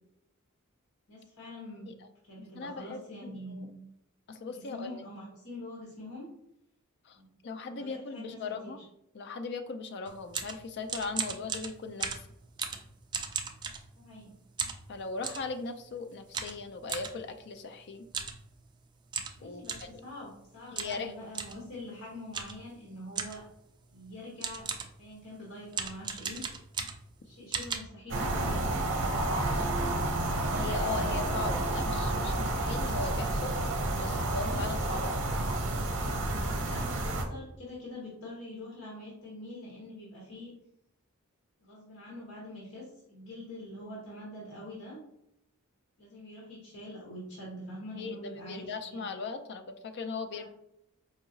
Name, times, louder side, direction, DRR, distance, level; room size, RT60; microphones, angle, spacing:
voice 1, 1.1-1.9 2.3-3.8 4.5-6.3 7.1-7.3 7.7-8.4 8.6-8.7 14.0-14.3 19.4-23.4 23.9-24.7 25.0-26.4 27.2-28.8 29.4-30.0 36.4-40.5 41.6-45.0 46.0-49.1 50.3-50.5, left 1 dB, 70° left, -5 dB, 1.1 m, -45 dB
voice 2, 2.4-3.7 4.3-4.9 7.0-8.8 9.1-12.2 14.9-18.1 19.4-20.0 20.7-21.1 30.5-33.5 33.9-35.3 48.0-50.5, left 4 dB, 50° left, 8 dB, 0.4 m, -38 dB
sound 1, 10.1-14.2 14.6-15.5 16.3-17.1 18.1-18.4 18.7-18.8 19.1-20.0 20.8-21.0 21.3-21.6 22.3-22.7 23.2-23.5 24.1-24.2 24.4-25.0 25.7-27.2 27.5-27.8, right 6 dB, 20° right, 0.3 m, -36 dB
sound 2, 28.1-37.2, right 2 dB, 55° right, 0.7 m, -30 dB
4.7 x 2.8 x 2.7 m, 0.80 s
head